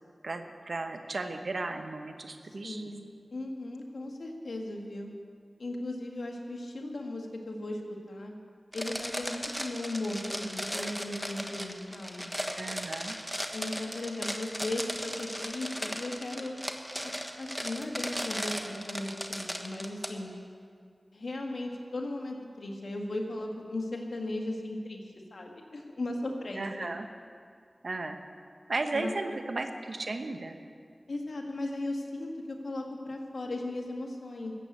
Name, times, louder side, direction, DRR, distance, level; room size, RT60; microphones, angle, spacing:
voice 1, 0.2-2.8 12.6-13.2 26.6-27.1 27.8-28.2 28.7-30.6, right 3 dB, 75° right, 6 dB, 1.0 m, -35 dB
voice 2, 2.6-5.1 5.6-7.8 8.1-8.3 8.7-12.3 13.5-16.6 17.0-17.1 17.4-20.3 21.1-25.0 25.3-26.9 28.9-29.4 31.1-34.5, left 2 dB, 85° left, 1 dB, 1.7 m, -37 dB
sound 1, 8.7-20.1, equal, ahead, 1.3 m, -36 dB
14.0 x 8.2 x 8.0 m, 2.2 s
cardioid pair, 45°, 0 cm